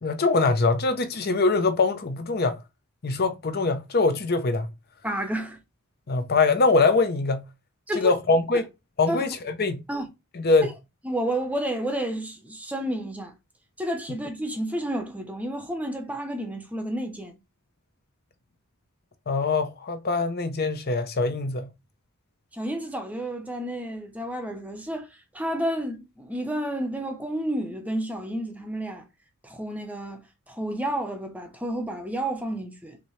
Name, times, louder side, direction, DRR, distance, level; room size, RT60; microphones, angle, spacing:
voice 1, 0.0-2.6 3.0-4.7 6.1-7.4 7.9-8.7 9.0-9.8 10.3-10.7 19.3-21.7, left 3 dB, 45° left, 0.7 m, -23 dB
voice 2, 5.0-5.6 7.9-8.1 9.1-9.2 9.9-10.1 11.0-13.3 13.8-17.3 22.5-25.1 25.3-29.1 29.4-33.0, right 1 dB, 5° right, 0.7 m, -30 dB
5.9 x 2.7 x 3.2 m
head